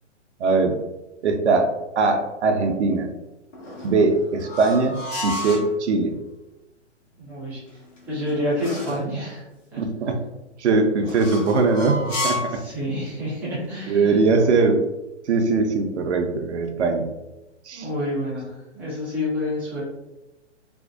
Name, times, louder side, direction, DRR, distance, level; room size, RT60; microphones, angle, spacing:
voice 1, 0.4-0.8 1.2-3.1 3.8-6.2 9.8-10.2 10.6-12.0 12.2-12.6 13.8-14.8 15.3-17.1 17.7-17.9, right 3 dB, 70° right, 5 dB, 0.5 m, -21 dB
sound 1, 3.5-5.7 7.7-9.1 11.0-12.6, left 1 dB, 85° left, 1.0 m, -31 dB
voice 2, 7.2-7.6 8.1-9.4 9.7-9.8 12.5-14.2 17.7-19.8, left 1 dB, 5° right, -9 dB, 0.4 m, -28 dB
2.5 x 2.1 x 2.4 m, 0.99 s
figure-of-eight pair, 125°, 36 cm